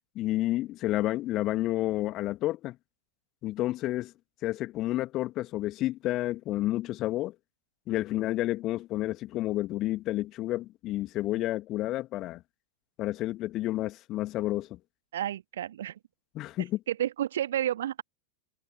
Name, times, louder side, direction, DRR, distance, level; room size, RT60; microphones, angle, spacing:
voice 1, 0.2-2.8 3.4-4.1 4.4-7.3 7.9-12.4 13.0-14.8 16.4-16.8, left 16 dB, 35° left, 2.0 m, -30 dB
voice 2, 15.1-16.0 16.6-18.0, right 11 dB, 60° right, 1.6 m, -31 dB
figure-of-eight pair, 90°, 0 cm